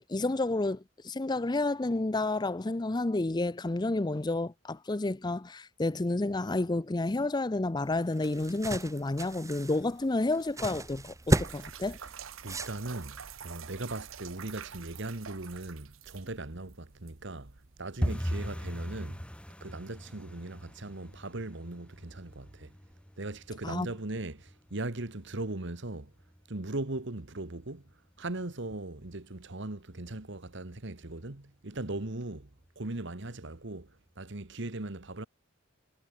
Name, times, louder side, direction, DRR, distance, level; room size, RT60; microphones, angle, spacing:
voice 1, 0.1-12.0 23.6-23.9, left 2 dB, 20° left, 0.5 m, -30 dB
sound 1, 7.8-13.2, right 1 dB, 15° right, 1.6 m, -34 dB
sound 2, 11.1-18.0, right 7 dB, 80° right, 1.2 m, -47 dB
voice 2, 12.4-19.3 19.6-22.7 23.2-26.1 26.5-27.9 28.2-32.5 32.7-35.3, right 2 dB, 60° right, 1.6 m, -39 dB
sound 3, 18.0-28.7 29.0-29.7 29.9-30.2 30.5-30.9 31.2-31.3 31.8-32.3 32.7-32.8 33.3-33.4, equal, 5° left, 2.6 m, -40 dB
head